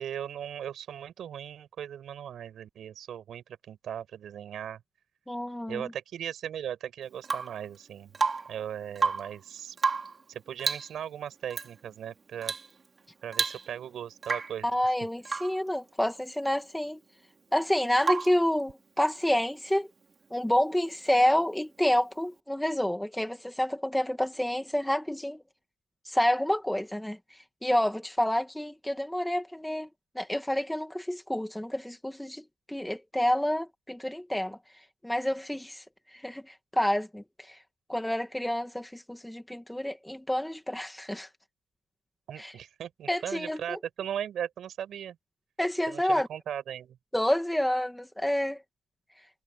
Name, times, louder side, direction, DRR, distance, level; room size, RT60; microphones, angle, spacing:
voice 1, 0.0-4.8 5.7-8.1 8.5-9.7 10.3-12.5 13.2-14.9 42.3-45.2 45.9-47.0, right 9 dB, 65° right, 6.7 m, -38 dB
voice 2, 5.3-5.9 14.6-17.0 17.5-19.9 20.3-25.4 26.1-27.2 27.6-29.9 30.2-34.6 35.0-35.8 36.2-37.6 37.9-41.3 42.4-42.5 43.1-43.8 45.6-46.3 47.1-48.6, left 1 dB, 5° left, 2.3 m, -28 dB
Rain / Water tap faucet / Drip, 7.2-7.6 8.1-8.6 8.9-9.4 9.8-10.2 10.6-11.0 11.5-11.7 12.4-12.7 13.0-13.1 13.3-13.9 14.2-14.6 15.3-15.6 18.0-18.5 20.4-20.5, right 4 dB, 35° right, 4.5 m, -30 dB
cardioid pair, 90°, 0 cm